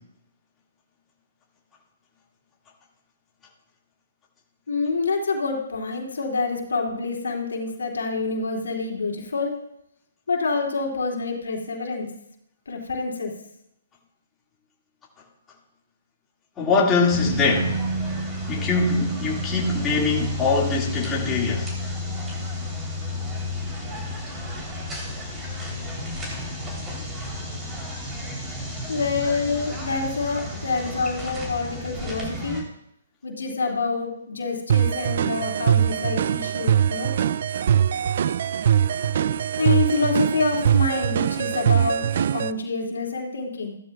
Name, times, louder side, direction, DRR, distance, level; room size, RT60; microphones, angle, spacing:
voice 1, 4.7-9.5 10.3-12.1 12.7-13.3 28.9-32.6 33.2-37.1 38.4-38.6 39.1-39.2 39.6-42.0 42.3-43.7, left 4 dB, 80° left, 2.6 m, -27 dB
voice 2, 16.6-17.8 18.5-21.7, left 4 dB, 15° left, 2.1 m, -22 dB
sound 1, 17.1-32.6, left 1 dB, 15° right, 3.4 m, -31 dB
sound 2, 34.7-42.5, right 9 dB, 55° right, 0.3 m, -22 dB
15.0 x 12.5 x 2.4 m
hypercardioid pair, 140°, 0 cm